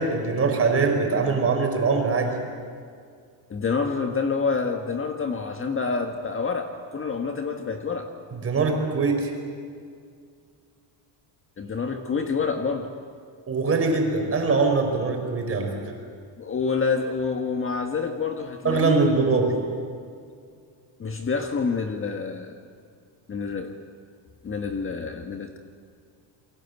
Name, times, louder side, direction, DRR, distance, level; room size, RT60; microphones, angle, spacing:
voice 1, 0.0-2.3 8.3-9.3 13.5-15.7 18.6-19.5, right 4 dB, 30° right, 3 dB, 5.3 m, -22 dB
voice 2, 3.5-8.1 11.6-12.9 16.4-19.3 21.0-22.6 23.3-23.8 24.4-25.6, left 5 dB, 25° left, 5 dB, 1.5 m, -27 dB
28.0 x 23.0 x 8.2 m, 2.2 s
cardioid pair, 145°, 47 cm